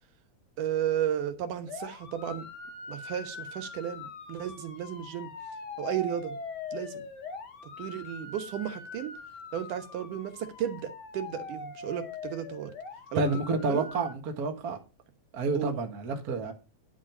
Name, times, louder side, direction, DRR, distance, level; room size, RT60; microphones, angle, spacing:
voice 1, 0.6-2.5 2.9-5.3 5.8-6.4 6.7-7.0 7.8-9.1 9.5-12.7 13.1-13.2 13.5-13.9 15.5-15.8, right 10 dB, 85° right, 2.7 m, -33 dB
sound 1, 1.7-14.1, left 4 dB, 50° left, 1.3 m, -42 dB
voice 2, 13.1-14.8 15.3-16.5, right 3 dB, 40° right, 1.6 m, -29 dB
10.5 x 5.0 x 6.0 m
omnidirectional pair, 3.6 m